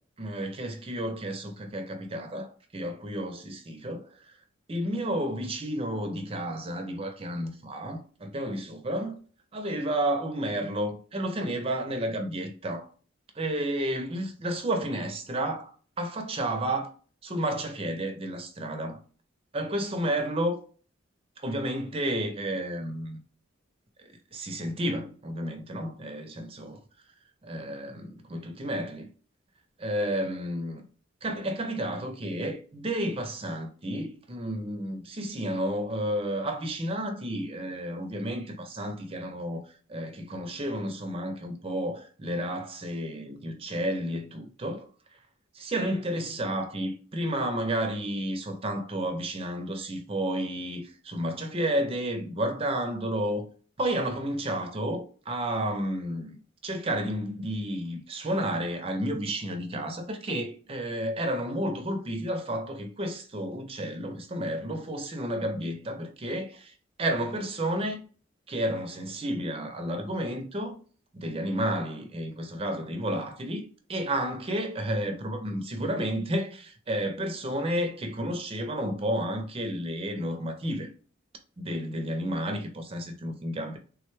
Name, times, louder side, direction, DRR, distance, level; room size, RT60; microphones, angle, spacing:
voice 1, 0.2-4.4 4.7-9.2 9.5-12.9 13.4-16.9 17.2-19.0 19.5-20.6 21.4-23.2 24.0-26.8 27.4-29.1 29.8-30.8 31.2-39.6 39.9-44.9 45.5-53.5 53.8-68.0 68.5-70.8 71.1-80.9 81.6-83.8, right 1 dB, 30° right, 0.5 m, -31 dB
3.4 x 2.2 x 3.1 m
head